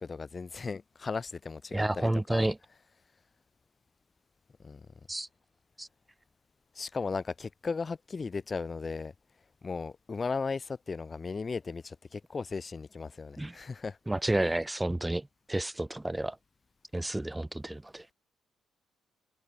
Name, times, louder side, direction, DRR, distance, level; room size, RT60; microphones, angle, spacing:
voice 1, 0.0-2.5 4.6-4.9 6.7-9.1 9.6-14.0, left 4 dB, 35° left, 7.2 m, -36 dB
voice 2, 1.7-2.5 5.1-5.3 5.8-5.9 13.4-13.6 14.1-15.2 15.5-16.4 16.9-18.0, right 1 dB, 10° right, 1.3 m, -30 dB
cardioid pair, 90°, 0 cm